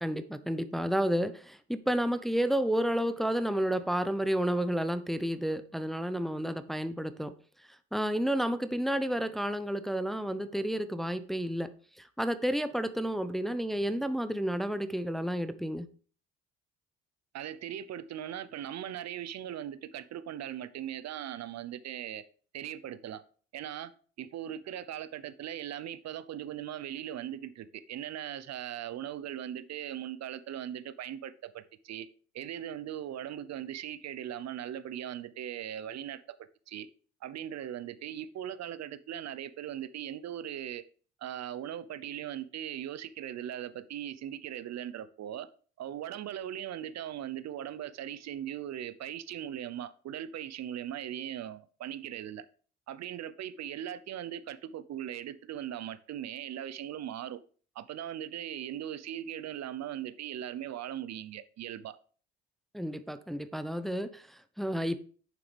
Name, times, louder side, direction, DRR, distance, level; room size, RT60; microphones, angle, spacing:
voice 1, 0.0-7.3 7.9-11.7 12.0-15.9 62.7-65.0, equal, ahead, 0.8 m, -31 dB
voice 2, 17.3-22.2 22.5-23.2 23.5-23.9 24.2-32.1 32.3-36.4 36.7-36.9 37.2-40.8 41.2-45.5 45.8-52.5 52.9-57.4 57.7-62.0, right 10 dB, 55° right, 0.7 m, -39 dB
9.2 x 7.0 x 3.4 m
hypercardioid pair, 55°, 32 cm